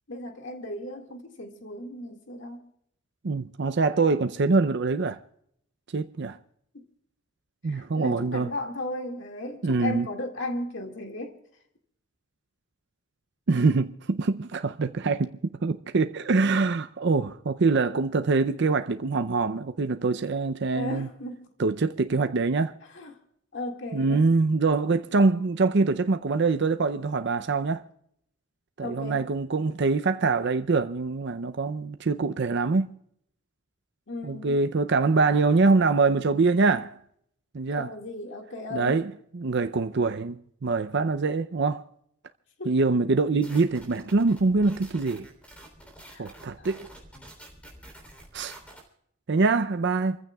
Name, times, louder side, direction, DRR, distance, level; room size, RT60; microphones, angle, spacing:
voice 1, 0.1-2.6 7.7-11.3 20.7-21.5 22.9-23.2 23.5-24.2 28.8-29.2 34.1-34.6 37.8-38.9 42.6-42.7 46.1-46.3 46.6-46.7, left 1 dB, 65° left, 2.0 m, -35 dB
voice 2, 3.2-5.2 5.9-6.4 7.6-8.5 9.6-10.1 13.5-21.1 21.6-22.7 23.9-27.8 28.8-32.9 34.2-37.0 37.5-37.9 38.7-41.9 42.7-45.3 46.2-46.9 48.3-48.5 49.3-50.2, right 3 dB, 60° right, 0.6 m, -24 dB
sound 1, 43.4-48.8, right 1 dB, 5° left, 3.4 m, -48 dB
28.5 x 15.0 x 2.3 m
head